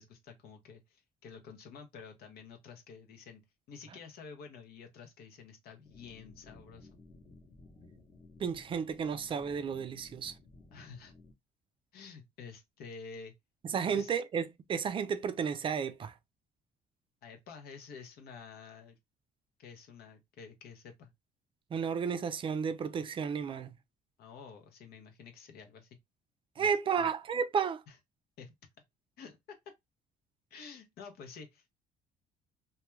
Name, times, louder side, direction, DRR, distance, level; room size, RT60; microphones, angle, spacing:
voice 1, 0.0-3.4 3.7-6.9 10.7-11.1 11.9-13.3 13.9-14.1 17.2-19.0 19.6-21.1 24.2-25.9 26.6-26.7 27.0-27.1 27.9-28.0 28.4-28.5 29.2-29.7 30.5-31.7, left 5 dB, 65° left, 0.6 m, -50 dB
sound 1, 5.8-11.3, left 2 dB, 35° left, 0.8 m, -56 dB
voice 2, 8.4-10.3 13.7-16.1 21.7-23.7 26.6-27.8, right 6 dB, 30° right, 0.3 m, -32 dB
2.2 x 2.2 x 3.0 m
cardioid pair, 110°, 17 cm